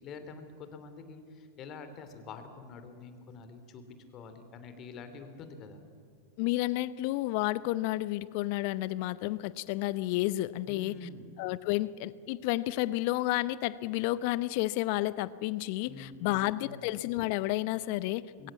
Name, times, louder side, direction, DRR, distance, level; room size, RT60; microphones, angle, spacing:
voice 1, 0.0-3.8 4.1-5.8 10.7-11.3 15.9-16.9 18.4-18.5, left 4 dB, 35° left, 9 dB, 2.9 m, -46 dB
voice 2, 6.4-10.9 11.4-18.5, left 17 dB, 50° left, 18 dB, 0.7 m, -31 dB
22.0 x 17.0 x 8.3 m, 2.2 s
figure-of-eight pair, 95°, 0 cm